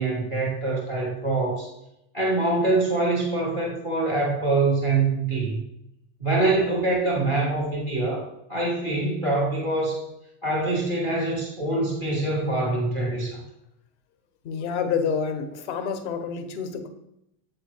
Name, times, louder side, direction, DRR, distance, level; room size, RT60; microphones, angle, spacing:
voice 1, 0.0-1.7 2.1-5.6 6.2-8.2 8.5-10.0 10.4-13.4, right 2 dB, 5° left, -3 dB, 0.4 m, -24 dB
voice 2, 14.4-16.9, left 6 dB, 45° left, 7 dB, 0.7 m, -28 dB
7.6 x 4.3 x 3.3 m, 0.81 s
supercardioid pair, 170°, 48 cm